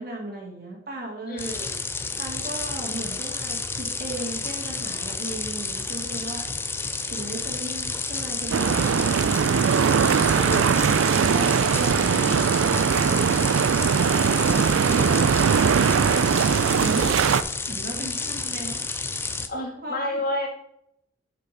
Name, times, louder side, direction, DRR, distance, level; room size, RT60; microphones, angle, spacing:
voice 1, 0.0-1.5 2.2-6.5 7.1-9.6 9.9-17.4 17.7-18.8 19.8-20.2, right 1 dB, 50° right, -1 dB, 1.6 m, -36 dB
voice 2, 1.3-1.8 10.3-10.8 15.8-15.9 19.5-20.5, left 1 dB, 45° left, -1 dB, 2.1 m, -31 dB
sound 1, 1.4-19.5, left 4 dB, 10° left, 0.4 m, -30 dB
sound 2, 8.5-17.4, right 6 dB, 85° right, 0.4 m, -21 dB
6.4 x 5.8 x 5.0 m, 0.76 s
head